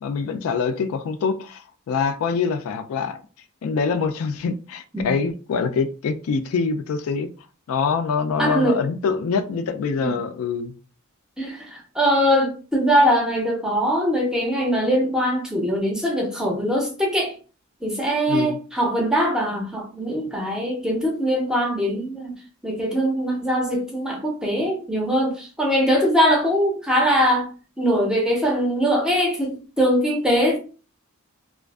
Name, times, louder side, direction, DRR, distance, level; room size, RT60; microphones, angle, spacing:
voice 1, 0.0-3.2 3.6-7.3 7.7-10.7 18.3-18.6, left 5 dB, 70° left, 0.3 m, -25 dB
voice 2, 8.4-8.8 10.0-10.2 11.4-17.3 17.8-22.4 22.6-30.6, equal, 5° right, 0.5 m, -22 dB
2.4 x 2.3 x 2.3 m
head